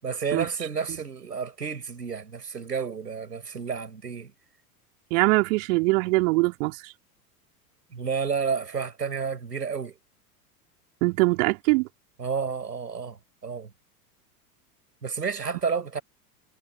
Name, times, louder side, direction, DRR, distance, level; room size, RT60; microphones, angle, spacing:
voice 1, 0.0-4.3 7.9-10.0 12.2-13.7 15.0-16.0, right 6 dB, 85° right, 6.1 m, -31 dB
voice 2, 5.1-6.9 11.0-11.9, right 24 dB, 55° right, 4.1 m, -22 dB
figure-of-eight pair, 85°, 47 cm